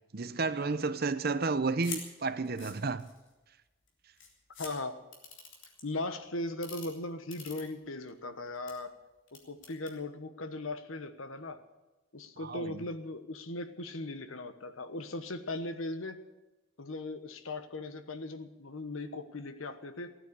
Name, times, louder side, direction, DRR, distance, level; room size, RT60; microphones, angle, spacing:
voice 1, 0.1-3.1 12.4-12.8, right 3 dB, 50° right, 0.7 m, -32 dB
sound 1, 1.8-2.0 2.4-3.3 3.9-4.0 4.2-4.7 5.1-5.8 6.5-6.9 7.3-8.1 8.5-8.7 9.3-9.9, left 5 dB, 65° left, 3.4 m, -44 dB
voice 2, 4.6-5.0 5.8-8.9 9.3-11.6 12.1-16.2 16.8-20.2, left 2 dB, 90° left, 1.2 m, -38 dB
16.0 x 9.2 x 8.3 m
head